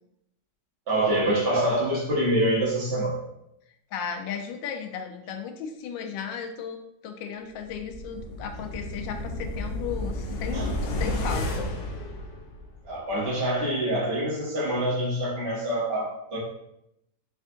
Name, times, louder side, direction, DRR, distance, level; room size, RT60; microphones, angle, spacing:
voice 1, 0.9-3.2 10.5-10.7 12.8-16.4, right 1 dB, 70° right, -5 dB, 2.0 m, -25 dB
voice 2, 3.9-11.7, left 7 dB, 90° left, 5 dB, 1.3 m, -35 dB
sound 1, 7.7-12.9 13.2-13.3, left 1 dB, 75° left, 0.7 m, -32 dB
4.4 x 3.5 x 2.5 m, 0.81 s
omnidirectional pair, 1.9 m